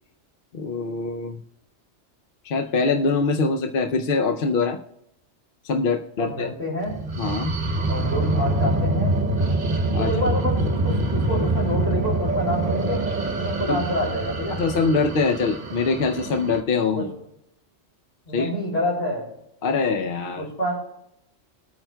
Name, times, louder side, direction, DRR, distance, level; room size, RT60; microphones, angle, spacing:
voice 1, 0.5-1.4 2.4-4.8 5.6-6.5 7.2-7.5 9.9-10.1 13.7-13.8 14.5-17.1 18.3-18.5 19.6-20.5, left 4 dB, 55° left, 4 dB, 0.7 m, -23 dB
voice 2, 6.2-6.9 7.9-9.1 10.0-13.1 13.4-14.6 16.9-17.0 18.3-19.3 20.4-20.7, left 1 dB, 35° left, -7 dB, 3.4 m, -27 dB
sound 1, 6.9-16.6, right 2 dB, 45° right, 1.1 m, -25 dB
21.5 x 8.9 x 2.2 m, 0.81 s
omnidirectional pair, 1.3 m